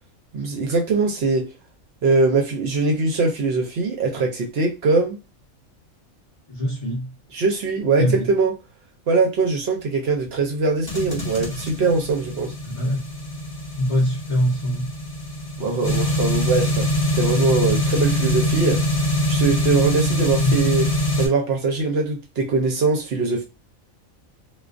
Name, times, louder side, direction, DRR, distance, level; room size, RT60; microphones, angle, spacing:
voice 1, 0.3-1.5 2.0-5.2 7.3-8.6 9.1-12.5 15.6-18.8 19.3-20.9 21.2-23.4, right 3 dB, 60° right, 0.7 m, -22 dB
voice 2, 6.5-7.1 8.0-8.3 12.7-13.0 13.8-14.9 20.4-20.6, equal, 75° left, 0.3 m, -23 dB
sound 1, 10.9-21.3, left 1 dB, 30° left, 0.8 m, -23 dB
2.3 x 2.2 x 2.4 m
omnidirectional pair, 1.4 m